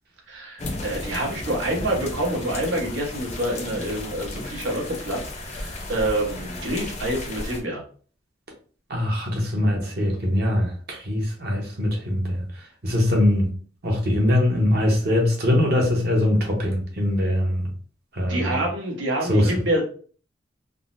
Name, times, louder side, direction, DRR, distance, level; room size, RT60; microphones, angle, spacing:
voice 1, 0.3-7.8 18.3-19.8, right 1 dB, 85° right, 1.1 m, -27 dB
sound 1, 0.6-7.6, left 2 dB, 35° left, 0.5 m, -34 dB
voice 2, 8.9-12.4 12.8-13.5 13.8-17.6 18.1-18.6 19.3-19.5, left 1 dB, 55° right, 0.9 m, -22 dB
3.7 x 2.0 x 2.5 m
head